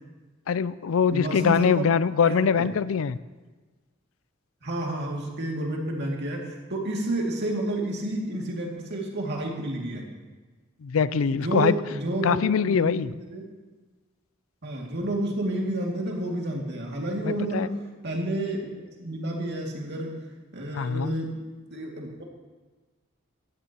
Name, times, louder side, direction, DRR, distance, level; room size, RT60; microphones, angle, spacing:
voice 1, 0.5-3.2 10.8-11.7 12.2-13.1 17.2-17.7 20.7-21.1, left 6 dB, 75° left, 17 dB, 0.4 m, -23 dB
voice 2, 1.1-1.9 2.2-2.7 4.6-10.1 11.3-13.4 14.6-17.7 18.0-18.7 19.0-20.2 20.5-21.4 21.7-22.2, right 1 dB, 55° right, 0 dB, 2.4 m, -30 dB
18.0 x 13.5 x 3.0 m, 1.3 s
head